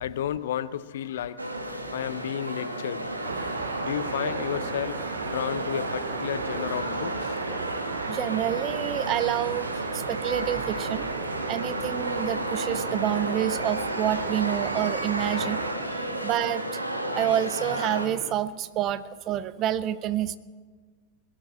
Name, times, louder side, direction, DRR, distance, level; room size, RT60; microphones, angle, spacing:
voice 1, 0.0-1.4 1.9-3.2 3.8-7.4 11.0-11.2 14.4-14.5 15.3-16.0 17.1-17.3 18.1-18.3, left 10 dB, 60° left, 0.5 m, -33 dB
sound 1, 1.4-18.1, right 1 dB, 80° right, 1.2 m, -33 dB
sound 2, 3.2-15.7, right 5 dB, 60° right, 1.1 m, -35 dB
sound 3, 6.5-16.0, left 1 dB, 35° left, 2.7 m, -51 dB
voice 2, 8.1-11.1 11.5-15.7 16.2-16.8 17.2-20.4, right 12 dB, 35° right, 0.5 m, -28 dB
20.5 x 7.5 x 7.5 m
figure-of-eight pair, 90°, 0 cm